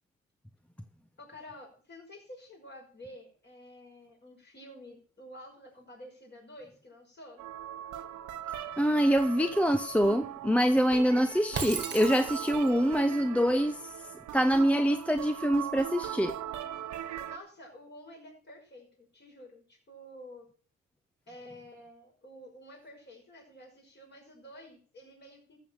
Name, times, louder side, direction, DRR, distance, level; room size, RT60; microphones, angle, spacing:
voice 1, 1.2-7.4 17.3-20.5 21.3-25.6, left 1 dB, 35° left, 5.6 m, -50 dB
sound 1, 7.4-17.4, right 11 dB, 75° right, 1.0 m, -40 dB
voice 2, 8.8-13.9 14.3-16.4, equal, 5° left, 0.6 m, -25 dB
Shatter, 11.5-12.8, right 5 dB, 40° right, 1.6 m, -36 dB
14.0 x 7.3 x 5.9 m
cardioid pair, 90°, 30 cm